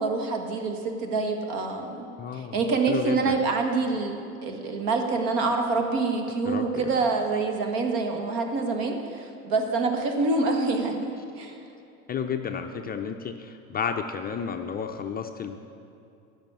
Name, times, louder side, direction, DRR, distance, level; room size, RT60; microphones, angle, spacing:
voice 1, 0.0-2.0 2.3-11.6, right 3 dB, 55° right, 4 dB, 1.7 m, -26 dB
voice 2, 2.2-2.6 2.9-3.4 6.4-6.9 12.1-15.6, left 7 dB, 20° left, 5 dB, 0.5 m, -32 dB
10.5 x 6.5 x 8.2 m, 2.7 s
hypercardioid pair, 90°, 43 cm